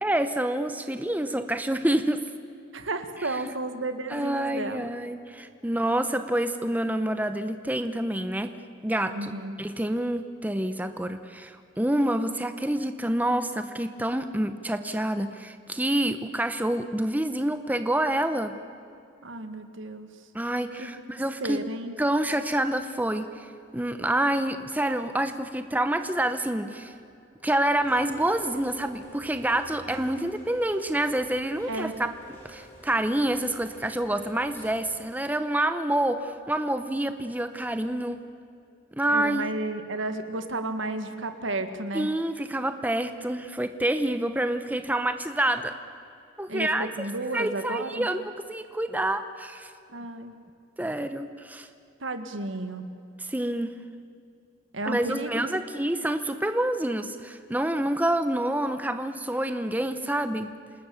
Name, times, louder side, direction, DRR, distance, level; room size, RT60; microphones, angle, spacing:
voice 1, 0.0-2.2 3.2-3.4 4.1-8.6 8.8-9.3 9.6-18.6 20.3-21.6 22.0-26.9 27.4-32.1 32.4-38.2 39.0-39.5 41.9-45.7 46.4-46.9 47.3-49.7 50.8-51.7 53.2-53.7 54.8-60.5, right 1 dB, 10° right, 9 dB, 0.8 m, -27 dB
voice 2, 2.7-4.9 9.1-9.6 19.2-20.1 20.8-21.9 29.9-30.4 31.7-31.9 39.1-42.1 46.5-48.1 49.9-50.3 52.0-52.9 54.7-55.6, right 2 dB, 80° right, 8 dB, 1.8 m, -33 dB
Rain, 27.8-35.0, right 1 dB, 10° left, 6.6 m, -49 dB
28.0 x 20.0 x 7.1 m, 2.6 s
head